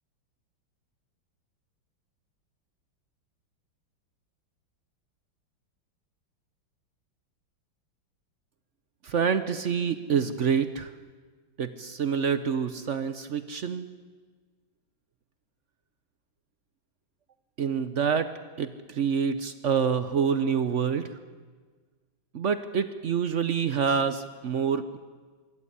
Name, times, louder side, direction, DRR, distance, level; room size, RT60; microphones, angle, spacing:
voice 1, 9.0-10.9 11.6-13.9 17.6-18.3 18.6-21.1 22.3-25.0, right 6 dB, 55° right, 12 dB, 0.8 m, -27 dB
25.0 x 13.5 x 9.9 m, 1.5 s
omnidirectional pair, 2.2 m